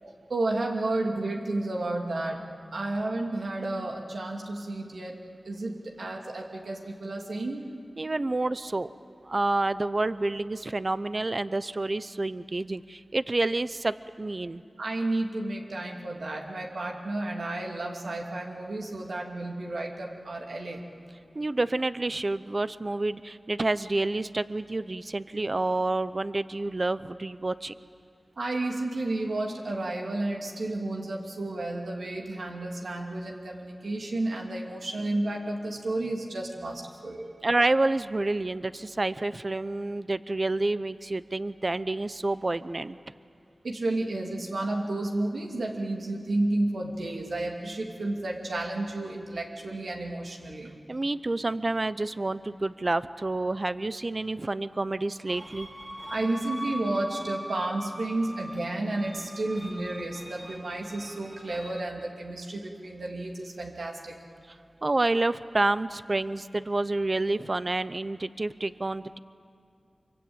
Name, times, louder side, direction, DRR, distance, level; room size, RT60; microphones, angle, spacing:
voice 1, 0.0-2.5 2.7-5.2 5.4-7.7 14.8-20.8 28.4-37.5 43.6-50.7 56.1-64.1, right 2 dB, 85° right, 0 dB, 2.7 m, -32 dB
voice 2, 8.0-8.9 9.3-14.6 21.3-27.7 37.4-43.0 50.9-55.7 64.8-69.2, right 2 dB, 45° right, 14 dB, 0.7 m, -28 dB
sound 1, 55.3-61.8, right 1 dB, 20° right, 3.0 m, -41 dB
24.5 x 23.5 x 8.9 m, 2.4 s
wide cardioid pair, 50°, 0 cm